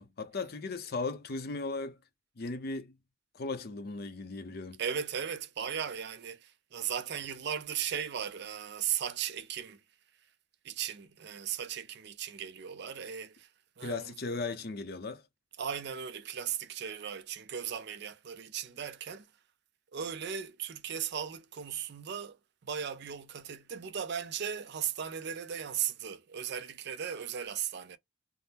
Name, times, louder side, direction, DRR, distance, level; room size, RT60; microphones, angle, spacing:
voice 1, 0.0-2.0 2.4-2.9 3.3-4.8 13.8-15.2, left 3 dB, 50° left, 0.6 m, -37 dB
voice 2, 4.8-9.8 10.6-13.5 13.8-14.1 15.6-19.3 19.9-22.4 22.6-28.0, right 8 dB, 50° right, 0.4 m, -37 dB
3.5 x 2.0 x 2.7 m
head